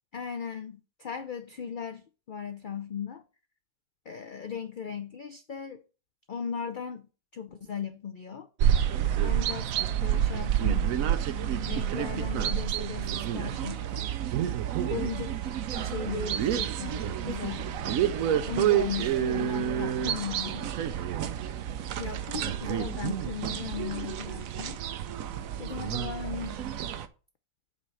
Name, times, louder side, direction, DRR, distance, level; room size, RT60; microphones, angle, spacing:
voice 1, 0.1-3.2 4.1-5.8 6.3-8.5 9.2-10.9 11.7-14.1 14.9-17.7 18.5-20.7 22.0-24.8 25.6-26.7, left 7 dB, 90° left, 0.4 m, -37 dB
sound 1, 8.6-27.1, right 10 dB, 70° right, 1.0 m, -29 dB
5.6 x 4.3 x 6.2 m
omnidirectional pair, 1.6 m